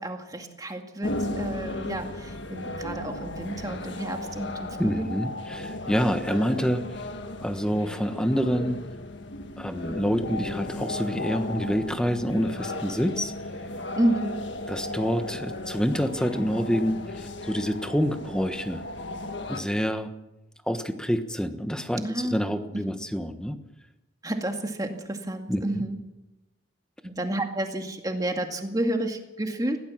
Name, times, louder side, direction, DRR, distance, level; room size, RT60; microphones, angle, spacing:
voice 1, 0.0-5.1 13.9-14.4 22.0-22.6 22.9-23.0 24.2-26.0 27.0-29.8, right 1 dB, 20° right, 4 dB, 2.2 m, -30 dB
sound 1, 1.0-19.6, left 2 dB, 65° left, 1.7 m, -35 dB
voice 2, 4.7-6.9 7.4-8.9 9.6-13.3 14.7-17.0 17.4-18.8 19.5-20.1 20.7-23.6 25.5-25.8, equal, 5° left, 8 dB, 1.3 m, -27 dB
20.5 x 17.0 x 7.4 m, 0.96 s
head